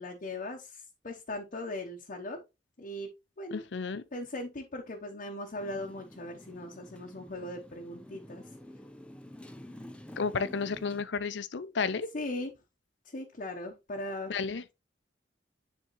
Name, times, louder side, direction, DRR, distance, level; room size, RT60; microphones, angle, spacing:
voice 1, 0.0-2.4 2.8-3.1 3.4-3.6 4.1-8.6 12.1-12.5 13.0-14.3, left 1 dB, 45° left, 0.8 m, -39 dB
voice 2, 3.5-4.0 10.2-12.1 14.3-14.6, left 5 dB, 75° left, 0.6 m, -32 dB
Motorcycle, 5.6-11.0, left 1 dB, 5° left, 0.6 m, -49 dB
9.9 x 3.7 x 3.0 m
head